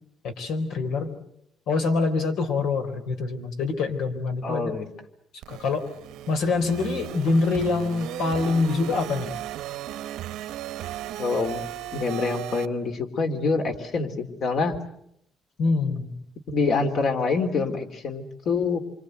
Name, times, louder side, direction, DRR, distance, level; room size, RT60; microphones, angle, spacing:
voice 1, 0.2-1.1 1.7-4.7 5.5-5.9 6.3-9.3 15.6-16.1, left 4 dB, 80° left, 7 dB, 4.0 m, -25 dB
voice 2, 4.4-4.9 11.2-11.6 11.9-14.8 16.5-18.8, left 4 dB, 60° left, 5 dB, 3.3 m, -26 dB
sound 1, 5.4-12.7, right 13 dB, 90° right, 1.2 m, -36 dB
27.5 x 25.0 x 8.0 m, 0.75 s
cardioid pair, 135°, 0 cm